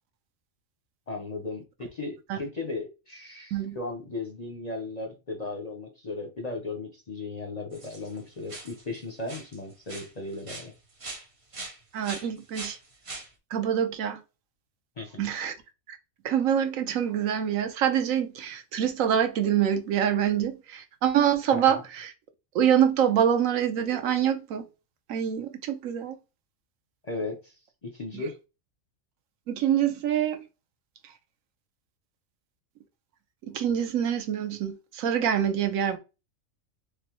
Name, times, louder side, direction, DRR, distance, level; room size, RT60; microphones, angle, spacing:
voice 1, 1.1-10.7 15.0-15.3 21.5-21.8 27.0-28.4, left 3 dB, 40° left, 0.6 m, -36 dB
sound 1, 7.7-8.2 8.5-9.0 9.2-9.6 9.9-11.3 11.5-13.3, right 2 dB, 35° right, 0.5 m, -41 dB
voice 2, 11.9-12.8 13.5-14.2 15.2-15.5 16.2-22.1 22.5-24.7 25.1-26.2 29.5-30.4 33.4-36.0, right 9 dB, 75° right, 1.0 m, -25 dB
3.8 x 3.2 x 2.9 m
omnidirectional pair, 1.5 m